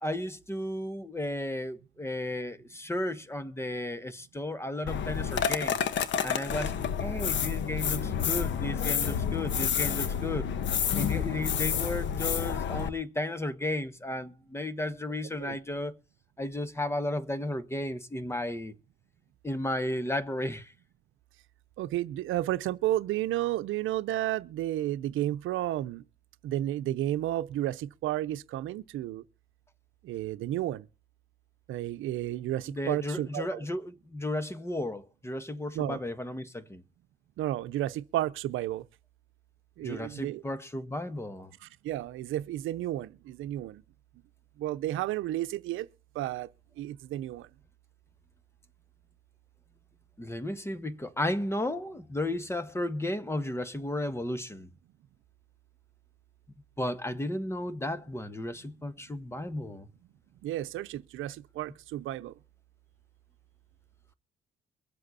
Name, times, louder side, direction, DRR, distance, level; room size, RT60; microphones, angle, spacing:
voice 1, 0.0-5.8 6.2-6.7 7.0-10.5 10.9-15.9 16.4-18.8 19.4-20.7 32.7-36.8 39.8-41.5 50.2-54.7 56.8-59.9, left 1 dB, 15° left, 1.3 m, -34 dB
sound 1, 4.9-12.9, left 8 dB, 70° left, 1.2 m, -29 dB
voice 2, 21.8-26.0 26.4-29.2 30.0-30.9 31.7-33.6 35.7-36.0 37.4-38.8 39.8-40.4 41.6-43.8 44.6-45.9 46.1-46.5 46.8-47.5 60.4-62.3, right 14 dB, 85° right, 0.7 m, -32 dB
23.5 x 7.8 x 4.2 m
cardioid pair, 90°, 20 cm